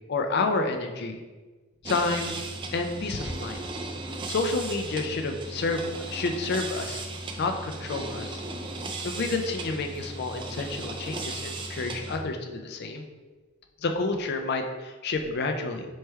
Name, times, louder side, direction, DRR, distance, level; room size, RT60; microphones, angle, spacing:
voice 1, 0.1-1.2 1.8-2.4 2.7-3.6 4.3-7.0 7.4-8.4 9.0-13.0 13.8-15.9, left 3 dB, 55° left, 5 dB, 0.4 m, -29 dB
sound 1, 1.8-12.2, right 2 dB, 25° right, 0.3 m, -36 dB
3.3 x 3.2 x 4.5 m, 1.3 s
head